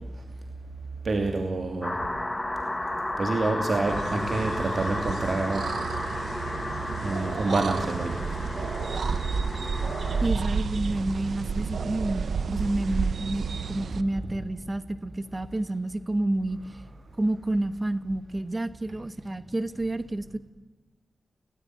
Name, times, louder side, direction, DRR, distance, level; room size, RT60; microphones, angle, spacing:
voice 1, 1.0-2.0 3.2-5.7 7.0-8.2, right 3 dB, 50° right, 3 dB, 2.7 m, -27 dB
sound 1, 1.8-10.3, left 1 dB, 15° left, 1.6 m, -33 dB
sound 2, 3.9-14.0, right 5 dB, 85° right, 0.9 m, -31 dB
voice 2, 10.2-13.4 13.7-16.6 17.2-20.4, right 1 dB, 20° right, 12 dB, 1.3 m, -29 dB
30.0 x 18.0 x 9.7 m, 1.3 s
wide cardioid pair, 165°, 0 cm